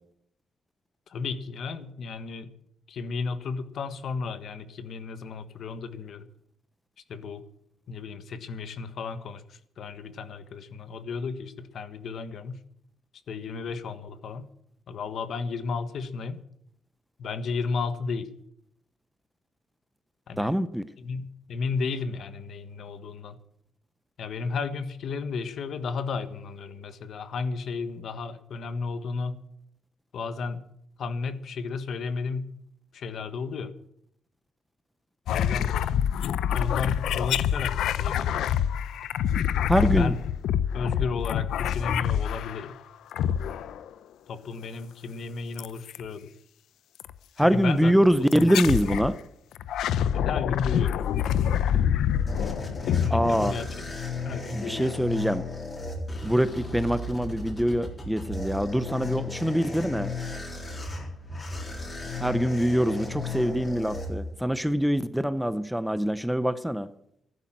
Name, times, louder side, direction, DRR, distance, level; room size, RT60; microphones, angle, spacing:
voice 1, 1.1-2.5 2.9-6.3 7.1-7.4 7.9-12.6 13.3-14.5 14.9-16.4 17.2-18.3 20.3-20.6 21.0-23.4 24.2-29.4 30.1-30.7 31.0-32.5 32.9-33.7 35.3-35.8 36.5-38.5 39.7-40.2 40.7-42.7 44.3-46.3 47.4-48.0 48.3-49.0 50.1-51.0 52.9-53.7 54.2-55.0, left 4 dB, 60° left, 11 dB, 1.4 m, -33 dB
voice 2, 20.4-20.8 39.7-40.1 47.4-49.2 52.2-52.5 53.1-53.5 54.5-55.4 56.2-60.1 62.2-66.9, equal, ahead, 13 dB, 0.6 m, -24 dB
sound 1, 35.3-42.7 43.1-43.9 45.6-46.0 47.0-47.2 48.3-49.1 49.5-53.9, left 9 dB, 90° left, 0.6 m, -26 dB
sound 2, 51.8-64.7, left 3 dB, 25° left, 4.1 m, -35 dB
14.5 x 12.0 x 7.5 m, 0.73 s
cardioid pair, 140°, 0 cm